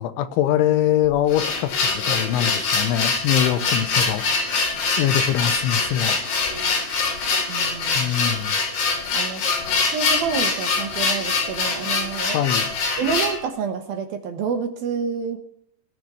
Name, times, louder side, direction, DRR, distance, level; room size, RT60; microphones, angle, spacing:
voice 1, 0.0-4.6 5.0-6.4 7.9-8.6 12.3-12.7, left 11 dB, 90° left, 11 dB, 3.4 m, -23 dB
sound 1, 1.1-13.4, left 4 dB, 65° left, 5.5 m, -24 dB
voice 2, 7.5-8.1 9.1-9.4 9.9-12.4 13.0-15.4, right 6 dB, 65° right, 5 dB, 2.5 m, -28 dB
19.0 x 9.5 x 5.7 m, 0.69 s
omnidirectional pair, 5.3 m